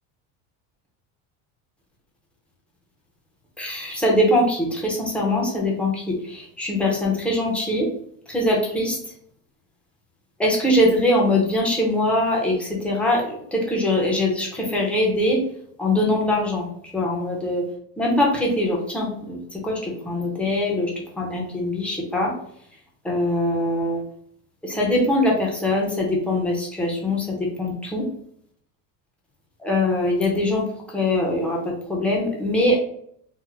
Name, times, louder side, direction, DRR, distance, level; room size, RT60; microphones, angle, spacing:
voice 1, 3.6-7.9 8.3-9.0 10.4-15.4 15.8-17.6 18.0-20.9 21.2-22.3 23.0-24.0 24.6-28.1 29.6-30.6 30.9-32.8, left 1 dB, 5° left, -3 dB, 0.6 m, -22 dB
3.7 x 2.0 x 3.1 m, 0.67 s
cardioid pair, 155°, 45 cm